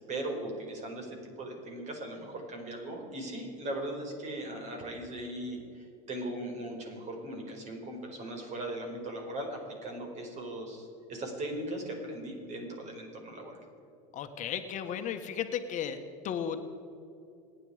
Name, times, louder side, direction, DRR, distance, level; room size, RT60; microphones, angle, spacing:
voice 1, 0.1-13.6, right 1 dB, 40° right, 2 dB, 4.9 m, -39 dB
voice 2, 14.1-16.0 16.2-16.7, left 8 dB, 45° left, 7 dB, 1.4 m, -34 dB
27.0 x 10.5 x 5.0 m, 2.6 s
supercardioid pair, 110°, 17 cm